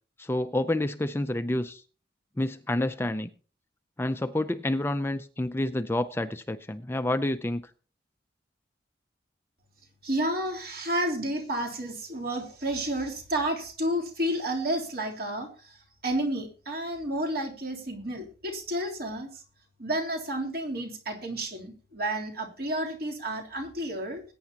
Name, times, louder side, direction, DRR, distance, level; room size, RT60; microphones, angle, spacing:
voice 1, 0.2-1.8 2.4-3.3 4.0-7.6, left 1 dB, 15° left, 0.4 m, -29 dB
voice 2, 10.0-19.4 19.8-24.2, right 1 dB, 55° right, 3.2 m, -31 dB
20.5 x 9.2 x 2.9 m
head